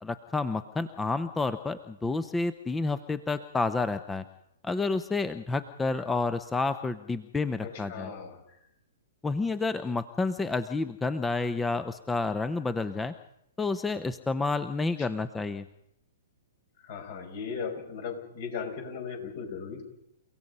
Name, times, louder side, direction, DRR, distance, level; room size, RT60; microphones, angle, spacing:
voice 1, 0.0-4.2 4.6-8.1 9.2-13.1 13.6-15.6, left 3 dB, 10° left, 12 dB, 0.8 m, -30 dB
voice 2, 7.7-8.4 16.9-19.8, left 6 dB, 55° left, 4 dB, 6.2 m, -37 dB
30.0 x 17.0 x 5.5 m, 0.80 s
hypercardioid pair, 120°, 0 cm